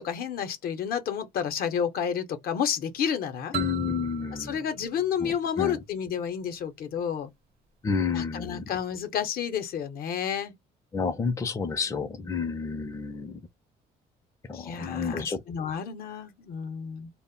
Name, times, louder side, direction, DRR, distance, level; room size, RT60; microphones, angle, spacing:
voice 1, 0.0-3.5 4.4-7.3 8.1-10.5 14.5-17.1, left 8 dB, 65° left, 0.6 m, -30 dB
voice 2, 3.5-4.6 5.2-5.8 7.8-8.6 10.9-13.4 14.5-15.4, left 5 dB, 20° left, 0.4 m, -30 dB
sound 1, 3.5-6.2, right 9 dB, 65° right, 0.6 m, -40 dB
2.0 x 2.0 x 3.6 m
cardioid pair, 110°, 17 cm